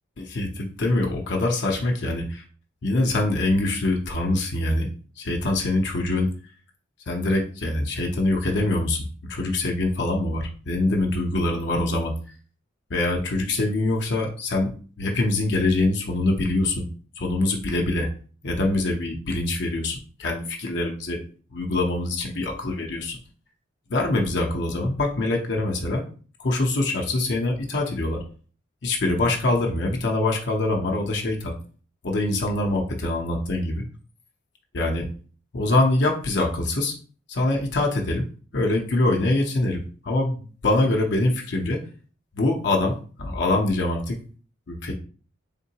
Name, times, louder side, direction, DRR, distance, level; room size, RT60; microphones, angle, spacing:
voice 1, 0.2-2.4 2.8-4.9 5.2-6.3 7.1-9.0 9.3-12.1 12.9-14.7 15.0-16.8 17.2-18.1 18.4-21.2 21.5-23.2 23.9-26.0 26.4-28.2 28.8-31.5 32.0-33.8 34.7-35.1 35.5-37.0 37.3-38.2 38.5-41.8 42.3-44.2 44.7-44.9, left 2 dB, 60° left, 1 dB, 0.6 m, -24 dB
3.7 x 3.6 x 2.8 m, 0.40 s
head